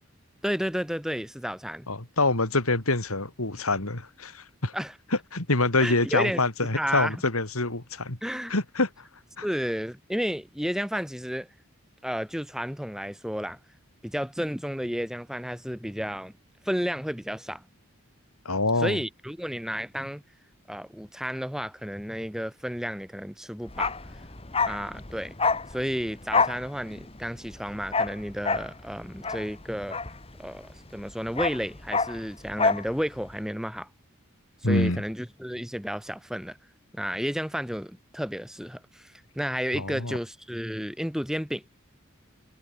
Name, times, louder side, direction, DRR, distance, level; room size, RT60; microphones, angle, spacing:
voice 1, 0.4-1.9 4.7-4.9 5.8-7.2 8.2-8.5 9.4-11.5 12.0-13.6 14.0-16.3 16.6-17.6 18.8-20.2 20.7-23.9 24.6-25.4 25.7-30.0 30.4-33.9 34.6-36.6 36.9-41.6, equal, ahead, 3.0 m, -32 dB
voice 2, 1.9-4.7 5.3-8.2 8.5-8.9 9.4-9.5 18.5-19.0 34.6-35.0 39.7-40.2, left 2 dB, 90° left, 3.5 m, -26 dB
Bark, 23.7-30.7 31.0-32.9 33.2-33.3, left 4 dB, 25° left, 1.9 m, -28 dB
head